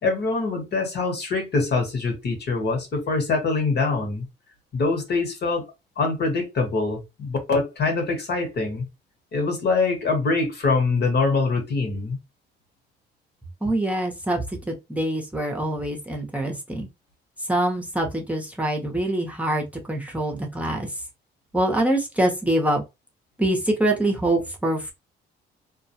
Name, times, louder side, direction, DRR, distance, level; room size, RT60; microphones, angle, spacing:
voice 1, 0.0-4.3 4.7-5.6 6.0-8.9 9.3-12.2, left 3 dB, 55° left, 1.2 m, -24 dB
voice 2, 13.6-16.9 17.5-20.9 21.5-22.8 23.4-24.9, right 1 dB, 5° right, 0.8 m, -24 dB
2.3 x 2.2 x 2.7 m
cardioid pair, 90°, 20 cm